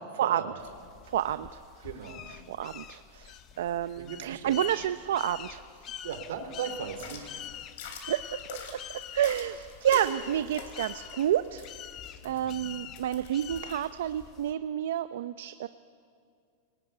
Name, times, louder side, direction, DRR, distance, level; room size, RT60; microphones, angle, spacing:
sound 1, 0.6-14.5, left 10 dB, 25° left, 0.7 m, -46 dB
voice 1, 1.1-1.9 2.3-5.6 8.1-8.4 8.7-11.6 12.2-15.7, right 11 dB, 70° right, 12 dB, 0.6 m, -30 dB
voice 2, 1.8-2.2 4.0-4.6 6.0-7.3 12.2-12.7, right 7 dB, 85° right, 6 dB, 3.7 m, -38 dB
sound 2, 6.9-13.9, left 4 dB, 50° left, 4.0 m, -45 dB
28.5 x 19.5 x 9.5 m, 2.3 s
supercardioid pair, 180°, 0 cm